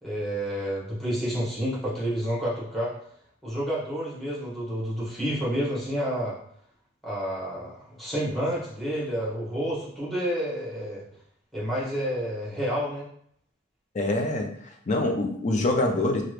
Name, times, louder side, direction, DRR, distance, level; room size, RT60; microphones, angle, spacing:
voice 1, 0.0-2.9 3.4-6.3 7.0-11.0 11.5-13.0, equal, ahead, -7 dB, 1.1 m, -29 dB
voice 2, 13.9-14.5 14.9-16.2, left 2 dB, 35° left, 2 dB, 0.5 m, -24 dB
3.0 x 2.4 x 3.1 m, 0.66 s
head